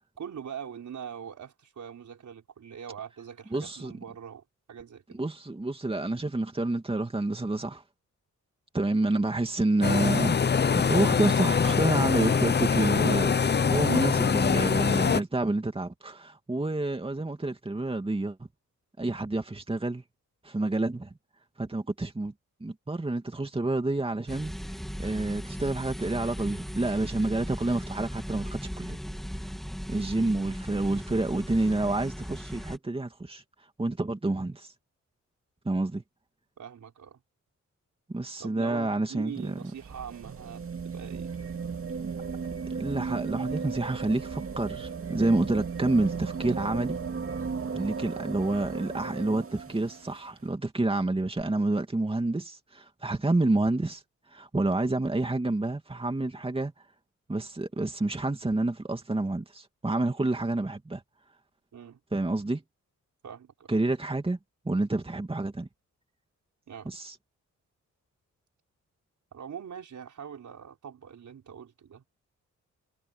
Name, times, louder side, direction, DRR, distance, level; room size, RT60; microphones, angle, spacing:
voice 1, 0.2-5.2 36.6-37.2 38.4-41.4 61.7-62.0 63.2-63.8 66.7-66.9 69.3-72.0, right 8 dB, 70° right, 5.0 m, -42 dB
voice 2, 3.5-3.9 5.1-7.8 8.7-10.3 10.9-18.4 19.0-20.0 20.4-21.1 21.6-22.3 22.6-24.5 25.0-29.0 29.9-33.4 33.8-34.7 35.6-36.0 38.1-39.5 42.7-47.0 47.7-54.0 54.3-56.7 57.3-61.0 62.1-62.6 63.7-64.4 64.6-65.7 66.8-67.1, right 2 dB, 20° right, 2.6 m, -28 dB
sound 1, 9.8-15.2, left 6 dB, 35° left, 0.7 m, -24 dB
sound 2, 24.3-32.8, equal, ahead, 3.1 m, -37 dB
sound 3, 39.2-50.2 51.4-51.5, right 5 dB, 45° right, 2.4 m, -36 dB
cardioid pair, 95°, 31 cm